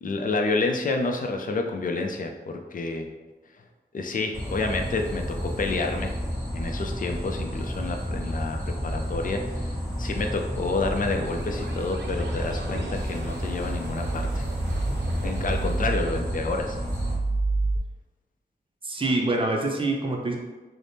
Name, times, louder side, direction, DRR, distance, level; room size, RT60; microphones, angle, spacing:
voice 1, 0.0-3.1 3.9-6.1 6.5-9.7 10.0-14.4 15.2-16.8, left 3 dB, 50° left, 3 dB, 0.5 m, -29 dB
sound 1, 4.3-17.1, equal, 10° left, 1.1 m, -31 dB
sound 2, 10.9-17.8, right 3 dB, 90° right, 0.5 m, -31 dB
voice 2, 18.8-20.4, right 2 dB, 30° right, 0 dB, 0.6 m, -25 dB
3.4 x 2.1 x 4.1 m, 1.2 s
wide cardioid pair, 105°, 18 cm